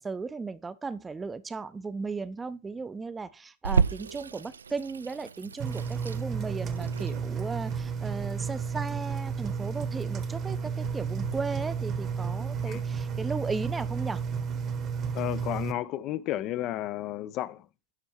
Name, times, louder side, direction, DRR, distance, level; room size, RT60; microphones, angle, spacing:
voice 1, 0.0-14.2, right 4 dB, 15° right, 0.5 m, -36 dB
Water tap faucet / Sink (filling or washing), 3.6-12.6, right 5 dB, 70° right, 0.3 m, -34 dB
Engine, 5.6-15.7, right 6 dB, 30° right, 0.9 m, -32 dB
voice 2, 15.1-17.7, left 14 dB, 35° left, 0.4 m, -32 dB
11.0 x 4.3 x 4.4 m
figure-of-eight pair, 90°, 0 cm